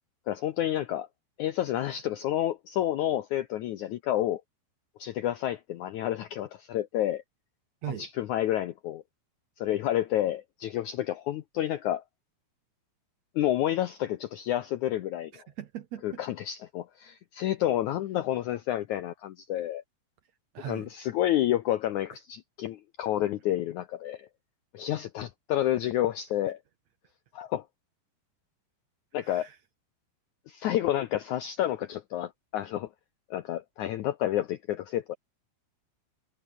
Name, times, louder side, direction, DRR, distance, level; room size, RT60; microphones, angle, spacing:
voice 1, 0.3-1.1 1.4-4.4 5.0-7.2 7.9-9.0 9.6-12.0 13.4-15.4 16.0-19.8 20.7-24.3 24.7-26.6 27.3-27.6 29.1-29.5 30.5-32.9 33.3-35.1, left 12 dB, 80° left, 1.7 m, -29 dB
voice 2, 15.3-16.2 20.5-20.9 29.2-29.6, right 11 dB, 65° right, 1.8 m, -39 dB
omnidirectional pair, 4.5 m